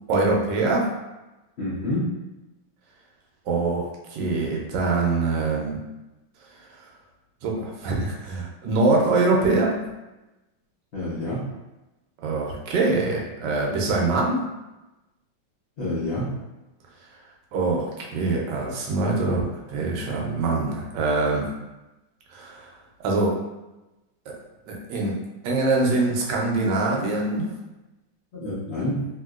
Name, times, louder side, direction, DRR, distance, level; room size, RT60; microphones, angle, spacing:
voice 1, 0.1-0.8 3.5-3.8 4.1-5.8 7.4-9.7 12.2-14.4 17.5-17.8 18.1-21.5 22.3-22.7 23.0-23.3 24.7-25.2 25.4-27.5, right 3 dB, 70° right, -2 dB, 1.2 m, -23 dB
voice 2, 1.6-2.1 10.9-11.4 15.8-16.3 28.3-29.0, left 1 dB, 60° left, -10 dB, 0.7 m, -28 dB
3.0 x 2.8 x 2.3 m, 1.0 s
omnidirectional pair, 2.1 m